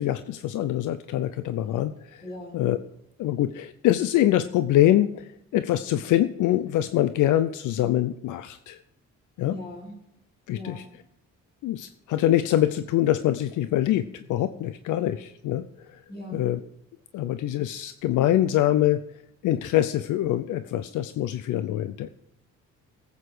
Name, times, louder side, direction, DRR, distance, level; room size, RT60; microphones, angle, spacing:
voice 1, 0.0-2.2 2.5-2.8 3.2-8.8 9.4-9.6 10.5-10.8 11.6-16.0 16.3-16.6 17.1-19.0 19.4-22.1, left 13 dB, 80° left, 12 dB, 0.6 m, -24 dB
voice 2, 2.2-2.6 9.4-10.0 10.5-10.9 16.1-16.5, left 1 dB, 35° left, -3 dB, 5.5 m, -39 dB
18.5 x 8.3 x 4.9 m, 0.76 s
cardioid pair, 90°, 30 cm